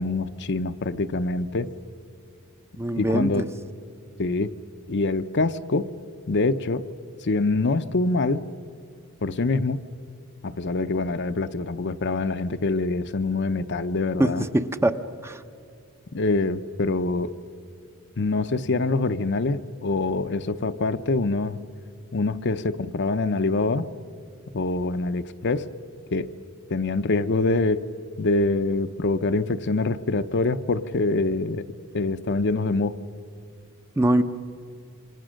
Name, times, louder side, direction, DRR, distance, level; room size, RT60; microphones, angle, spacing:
voice 1, 0.0-1.7 3.0-3.4 4.2-4.5 4.9-5.9 6.3-6.9 7.2-8.4 9.2-9.8 10.4-14.4 16.1-17.3 18.2-21.6 22.1-23.9 24.5-25.7 26.1-26.3 26.7-27.9 28.2-31.6 31.9-33.0, left 3 dB, 50° left, 10 dB, 0.7 m, -25 dB
voice 2, 2.8-3.4 14.2-15.4 34.0-34.2, right 1 dB, 10° right, 9 dB, 0.7 m, -23 dB
28.5 x 24.5 x 6.4 m, 2.5 s
head